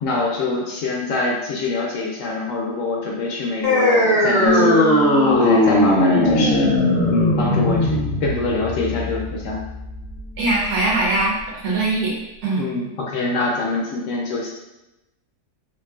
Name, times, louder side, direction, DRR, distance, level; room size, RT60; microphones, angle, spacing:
voice 1, 0.0-4.9 5.2-6.7 7.1-9.6 12.5-14.5, left 3 dB, 70° left, -2 dB, 0.8 m, -24 dB
sound 1, 3.6-10.6, left 1 dB, 30° left, 0.4 m, -18 dB
Bass guitar, 4.5-10.7, right 4 dB, 65° right, 0.9 m, -30 dB
voice 2, 10.4-12.2 12.4-12.6, right 2 dB, 85° right, -3 dB, 1.3 m, -21 dB
3.0 x 2.7 x 2.3 m, 0.95 s
omnidirectional pair, 1.6 m